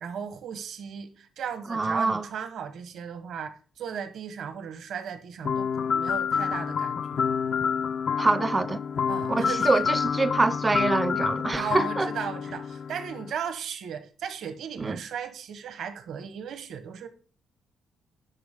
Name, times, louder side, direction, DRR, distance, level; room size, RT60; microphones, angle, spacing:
voice 1, 0.0-7.3 9.1-9.8 11.5-17.1, right 7 dB, 70° right, 1.1 m, -36 dB
voice 2, 1.7-2.3 8.2-8.8 9.3-12.1 14.8-15.0, right 3 dB, 20° right, 0.5 m, -25 dB
sound 1, 5.4-13.3, left 7 dB, 55° left, 0.4 m, -28 dB
10.5 x 4.8 x 3.5 m
cardioid pair, 90°, 0 cm